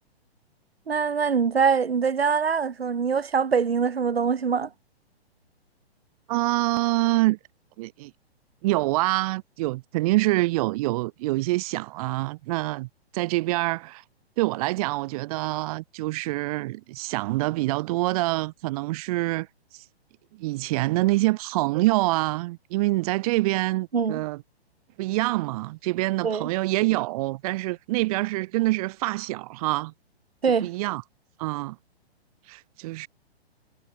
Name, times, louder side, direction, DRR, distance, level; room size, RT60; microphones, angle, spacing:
voice 1, 0.9-4.7 23.9-24.2 26.2-26.5 30.4-30.7, right 6 dB, 70° right, 3.6 m, -23 dB
voice 2, 6.3-7.4 7.8-8.1 8.6-12.9 13.1-14.0 14.4-19.5 19.7-19.8 20.4-24.4 25.0-29.9 30.6-31.0 31.4-31.8 32.5-33.1, right 20 dB, 35° right, 2.7 m, -26 dB
figure-of-eight pair, 125°, 32 cm